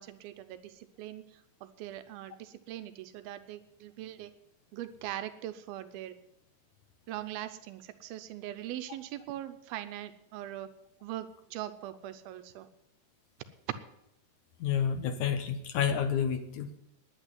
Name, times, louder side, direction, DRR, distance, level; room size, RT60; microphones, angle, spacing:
voice 1, 0.0-4.3 4.7-6.2 7.1-10.7 11.0-12.7 13.7-13.8, right 13 dB, 90° right, 11 dB, 2.7 m, -41 dB
voice 2, 14.6-16.8, left 8 dB, 65° left, 7 dB, 2.2 m, -30 dB
11.0 x 9.1 x 9.8 m, 0.81 s
omnidirectional pair, 4.2 m